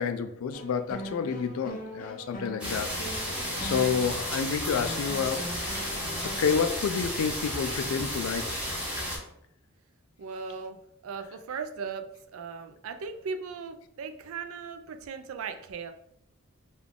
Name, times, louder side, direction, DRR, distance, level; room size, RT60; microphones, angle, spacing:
voice 1, 0.0-2.9 3.6-5.8 6.4-8.6, left 6 dB, 75° left, 0.3 m, -29 dB
sound 1, 0.5-6.4, equal, 40° left, 0.6 m, -41 dB
sound 2, 2.6-9.2, equal, 5° right, 1.1 m, -33 dB
voice 2, 10.2-10.8 11.0-15.9, right 5 dB, 80° right, 0.4 m, -38 dB
3.6 x 2.3 x 3.6 m
head